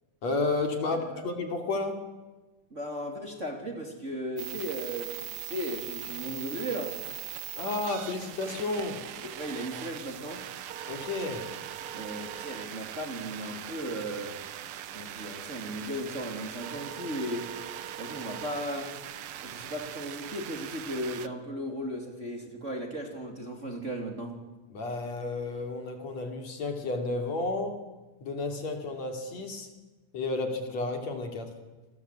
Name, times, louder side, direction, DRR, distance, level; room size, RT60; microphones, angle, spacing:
voice 1, 0.2-2.0 7.6-9.0 10.9-11.5 24.7-27.8 28.2-29.7 30.1-31.5, left 3 dB, 55° left, 5 dB, 4.0 m, -32 dB
voice 2, 0.9-1.3 2.7-7.0 9.3-10.4 11.9-14.4 14.9-17.5 18.0-18.9 19.4-24.4, equal, 20° right, 3 dB, 3.1 m, -36 dB
sound 1, 4.4-21.3, right 11 dB, 75° right, 1.3 m, -40 dB
27.5 x 22.0 x 8.4 m, 1.2 s
omnidirectional pair, 3.7 m